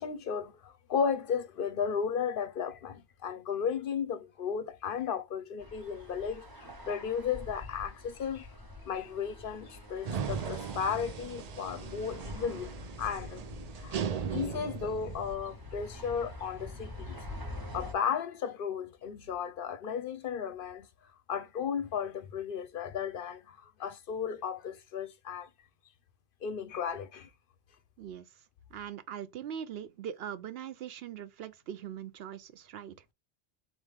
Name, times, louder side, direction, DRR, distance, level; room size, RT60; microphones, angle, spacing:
voice 1, 0.0-8.5 8.8-13.4 13.8-17.2 17.7-20.9 21.3-25.5 26.4-27.3, left 7 dB, 60° left, 0.7 m, -34 dB
sound 1, 5.6-17.9, left 1 dB, 20° right, 0.9 m, -45 dB
sound 2, 10.0-15.3, right 7 dB, 55° right, 0.4 m, -38 dB
voice 2, 28.7-33.0, right 9 dB, 70° right, 0.8 m, -41 dB
4.0 x 3.0 x 3.3 m
omnidirectional pair, 1.1 m